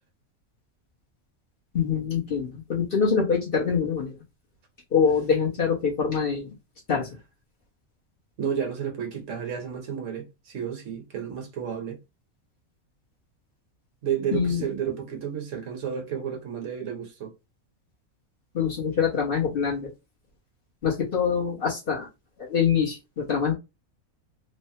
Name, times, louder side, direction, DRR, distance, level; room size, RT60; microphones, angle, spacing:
voice 1, 1.7-4.1 4.9-6.5 6.9-7.1 14.3-14.6 18.5-19.9 20.8-22.1 22.4-23.5, left 6 dB, 45° left, 1.0 m, -24 dB
voice 2, 8.4-12.0 14.0-17.3, right 8 dB, 65° right, 1.1 m, -31 dB
3.2 x 2.1 x 2.7 m
omnidirectional pair, 1.4 m